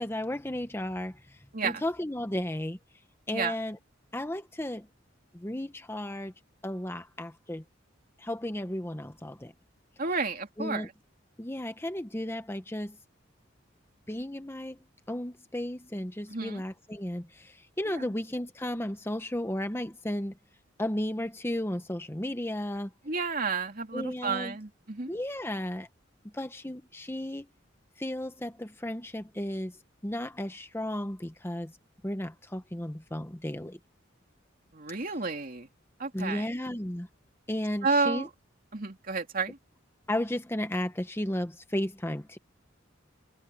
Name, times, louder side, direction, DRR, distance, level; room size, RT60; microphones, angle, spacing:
voice 1, 0.0-2.8 3.3-3.8 4.1-4.9 5.3-6.3 6.6-7.6 8.2-9.5 10.6-10.9 11.4-13.0 14.1-14.8 15.1-20.4 20.8-22.9 23.9-24.6 25.1-25.9 26.3-27.5 28.0-29.8 30.0-31.7 32.0-33.8 36.1-37.1 37.5-38.3 40.1-42.4, left 1 dB, 10° left, 0.9 m, -34 dB
voice 2, 10.0-10.9 16.3-16.6 17.9-18.1 23.0-25.1 34.7-35.7 36.0-36.5 37.8-38.3 38.7-39.6, right 4 dB, 45° right, 2.8 m, -31 dB
head